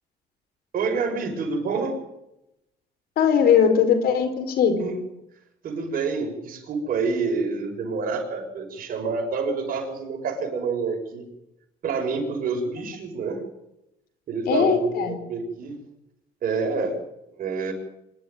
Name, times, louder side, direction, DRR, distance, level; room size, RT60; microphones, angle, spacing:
voice 1, 0.7-2.0 4.8-5.0 5.6-11.3 11.8-13.4 14.3-15.8 16.4-17.0 17.4-17.7, right 4 dB, 55° right, 3 dB, 6.1 m, -27 dB
voice 2, 3.2-4.9 14.5-15.1, left 7 dB, 65° left, 9 dB, 4.5 m, -20 dB
25.5 x 12.0 x 9.3 m, 0.86 s
cardioid pair, 110°, 17 cm